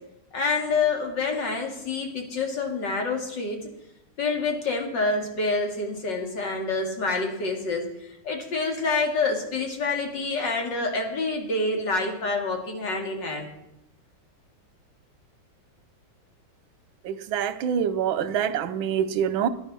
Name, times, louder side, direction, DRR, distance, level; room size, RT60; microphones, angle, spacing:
voice 1, 0.3-3.6 4.2-7.9 8.2-13.5, left 3 dB, 65° left, 3.0 m, -27 dB
voice 2, 17.0-19.5, right 8 dB, 85° right, 1.6 m, -25 dB
14.0 x 10.5 x 6.2 m
omnidirectional pair, 2.1 m